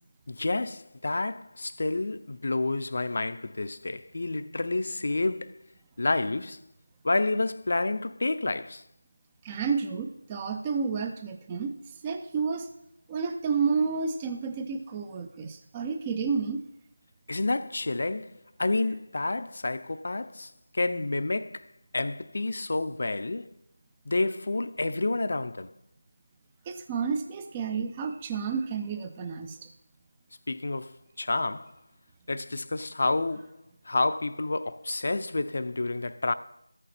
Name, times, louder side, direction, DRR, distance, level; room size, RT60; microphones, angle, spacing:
voice 1, 0.3-5.6 6.0-6.6 7.0-8.8 17.3-21.6 21.9-23.5 24.1-25.7 30.5-31.7 32.3-33.6 33.9-36.3, left 2 dB, 50° left, 0.5 m, -29 dB
voice 2, 9.4-11.7 12.0-12.7 13.1-16.6 26.7-29.7, right 5 dB, 15° right, 0.5 m, -30 dB
14.0 x 6.7 x 4.3 m
figure-of-eight pair, 170°, 0 cm